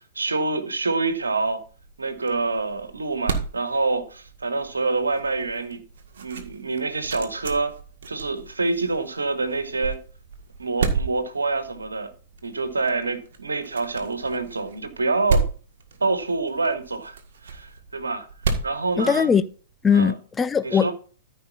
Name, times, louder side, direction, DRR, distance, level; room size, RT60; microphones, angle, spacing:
voice 1, 0.1-1.6 2.0-5.8 6.2-7.7 8.1-10.0 10.6-12.1 12.4-15.5 16.0-17.2 17.4-18.3 18.6-19.3 19.9-20.1 20.6-20.9, right 3 dB, 80° right, 1.5 m, -26 dB
sound 1, 1.2-19.7, right 4 dB, 60° right, 1.7 m, -33 dB
voice 2, 19.0-19.4 19.8-20.9, left 6 dB, 15° left, 0.5 m, -20 dB
14.0 x 5.1 x 4.1 m
figure-of-eight pair, 105°, 0 cm